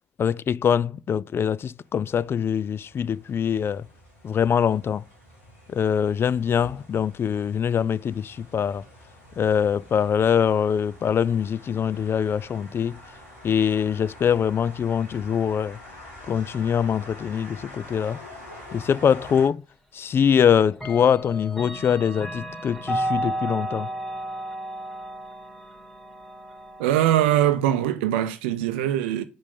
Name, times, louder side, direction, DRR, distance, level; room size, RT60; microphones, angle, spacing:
voice 1, 0.2-3.8 4.2-5.0 5.7-8.8 9.4-12.9 13.4-15.8 16.3-18.2 18.7-19.6 19.9-23.9, left 8 dB, 40° left, 0.3 m, -23 dB
sound 1, 1.8-19.5, left 1 dB, 85° left, 3.3 m, -46 dB
Clock, 19.4-19.5 20.7-27.5, right 1 dB, 5° left, 2.5 m, -33 dB
voice 2, 26.8-29.2, right 12 dB, 80° right, 0.5 m, -22 dB
5.2 x 5.2 x 5.2 m
hypercardioid pair, 50°, 6 cm